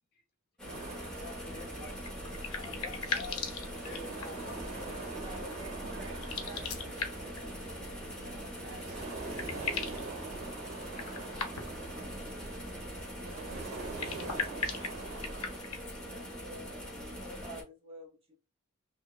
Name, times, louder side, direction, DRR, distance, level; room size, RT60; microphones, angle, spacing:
sound 1, 0.6-17.6, equal, 5° left, 0.7 m, -43 dB
sound 2, 0.7-15.6, right 3 dB, 85° right, 0.9 m, -44 dB
voice 1, 1.2-2.0 2.6-5.1, left 3 dB, 45° left, 0.7 m, -48 dB
sound 3, 2.0-4.5 6.1-7.4 8.8-8.9 9.1-10.1 10.9-11.9 13.8-16.0, left 5 dB, 85° left, 0.6 m, -38 dB
voice 2, 5.1-6.5 14.0-14.7 16.3-18.1, equal, 25° right, 1.1 m, -49 dB
voice 3, 5.8-7.3 8.0-9.4 12.8-14.5 16.0-16.3, right 2 dB, 50° right, 0.7 m, -52 dB
2.8 x 2.2 x 2.3 m
head